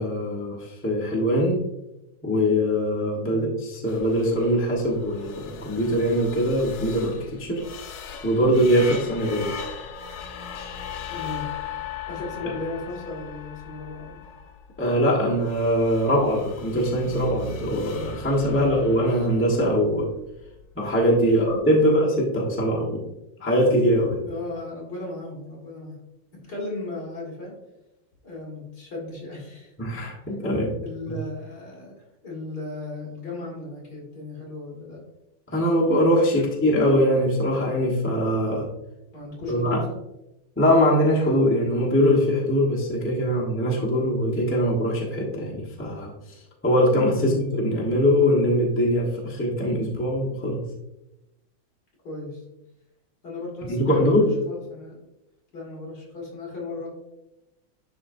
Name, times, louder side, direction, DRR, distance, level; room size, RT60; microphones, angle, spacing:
voice 1, 0.0-1.6 2.2-7.6 8.2-9.5 14.8-20.1 20.8-23.0 23.4-24.2 29.8-30.7 35.5-38.7 39.5-39.8 40.6-50.6 53.7-54.3, equal, 10° left, -3 dB, 0.7 m, -22 dB
Sweep-Cymbal, 3.8-21.6, left 6 dB, 65° left, 1.0 m, -39 dB
voice 2, 11.1-11.5 12.0-14.2 18.6-19.3 21.3-21.4 21.8-21.9 24.2-26.0 26.4-27.6 28.2-29.7 30.8-35.0 36.4-36.5 39.1-40.0 47.1-47.4 52.0-52.4 53.2-55.0 55.5-56.9, left 3 dB, 50° left, -4 dB, 2.6 m, -36 dB
11.0 x 3.8 x 2.6 m, 0.91 s
omnidirectional pair, 2.2 m